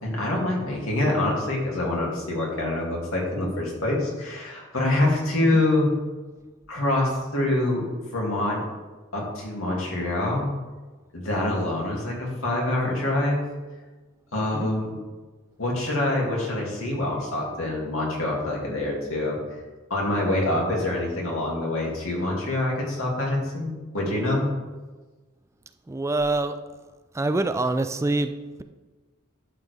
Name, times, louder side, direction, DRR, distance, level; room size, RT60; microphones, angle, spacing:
voice 1, 0.0-5.9 6.7-7.8 8.1-8.6 9.1-10.5 11.1-13.4 14.3-14.9 15.6-19.4 19.9-24.5, left 1 dB, 85° left, -3 dB, 2.6 m, -25 dB
voice 2, 25.9-26.6 27.1-28.6, right 2 dB, 15° right, 9 dB, 0.3 m, -25 dB
11.5 x 7.2 x 3.4 m, 1.3 s
head